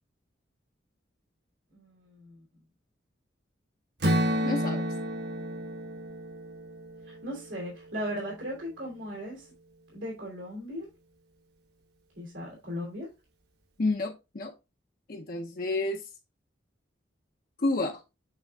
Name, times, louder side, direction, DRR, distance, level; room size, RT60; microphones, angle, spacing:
voice 1, 1.7-2.4 7.1-9.5 9.9-10.9 12.1-13.1, equal, 85° right, 3.0 m, -37 dB
Strum, 4.0-8.2, equal, 55° right, 1.1 m, -31 dB
voice 2, 4.4-4.9 13.8-14.5 15.1-16.0 17.6-18.0, left 2 dB, 50° left, 0.6 m, -30 dB
8.6 x 3.5 x 3.4 m
head